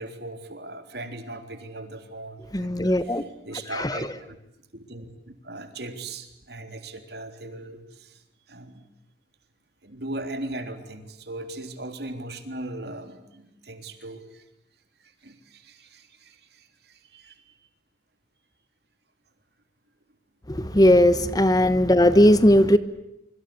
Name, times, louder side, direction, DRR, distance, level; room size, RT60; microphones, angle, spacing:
voice 1, 0.0-4.4 4.7-8.2 8.5-8.9 9.8-14.4 15.0-17.6, right 2 dB, 60° right, 7 dB, 3.5 m, -39 dB
voice 2, 2.5-3.2 3.8-4.0 20.5-22.8, left 1 dB, 20° left, 13 dB, 1.2 m, -18 dB
26.5 x 25.0 x 8.5 m, 0.83 s
head